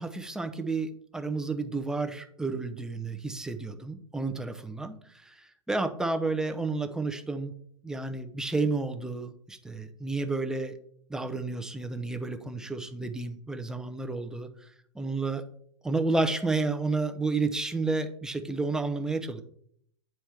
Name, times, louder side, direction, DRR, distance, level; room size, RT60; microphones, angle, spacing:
voice 1, 0.0-5.0 5.2-7.5 7.8-10.8 11.1-14.5 14.9-15.4 15.8-19.4, right 3 dB, 5° right, 6 dB, 0.7 m, -31 dB
9.0 x 4.5 x 4.4 m, 0.66 s
figure-of-eight pair, 100°, 16 cm